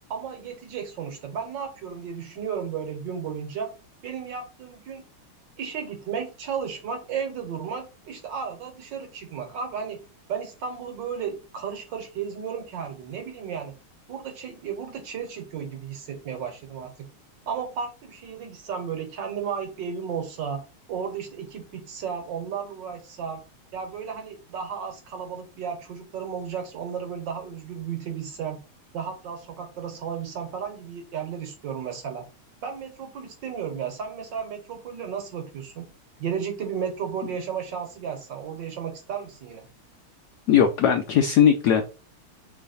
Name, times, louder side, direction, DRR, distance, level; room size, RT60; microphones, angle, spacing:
voice 1, 0.1-3.7 4.0-5.0 5.6-10.0 10.3-13.7 14.1-16.9 17.5-20.6 20.9-23.4 23.7-28.6 28.9-32.2 32.6-35.8 36.2-39.7, right 7 dB, 65° right, 6 dB, 1.5 m, -33 dB
voice 2, 40.5-41.8, left 8 dB, 80° left, 7 dB, 0.9 m, -19 dB
4.1 x 3.1 x 4.0 m, 0.32 s
omnidirectional pair, 2.3 m